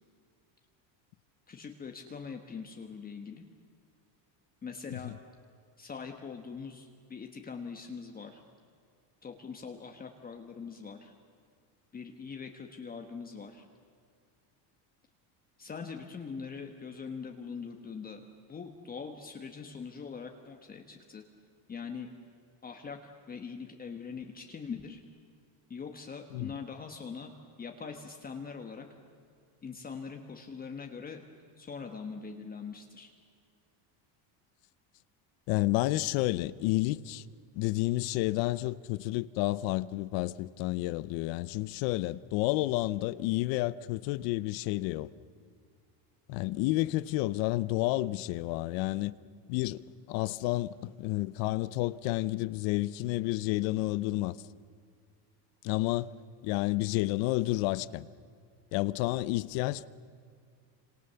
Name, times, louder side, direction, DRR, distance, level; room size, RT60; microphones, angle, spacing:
voice 1, 1.5-3.4 4.6-5.1 5.8-8.4 9.2-11.1 11.9-13.7 15.6-18.2 18.5-21.2 21.7-22.1 22.6-25.0 25.7-27.3 27.6-28.9 29.6-31.2 31.6-33.1, left 5 dB, 20° left, 1.3 m, -42 dB
voice 2, 35.5-37.2 37.5-45.1 46.3-49.1 49.5-54.4 55.6-56.1 56.4-58.1 58.7-59.9, left 18 dB, 65° left, 0.8 m, -30 dB
29.0 x 27.0 x 7.0 m
cardioid pair, 165°, 47 cm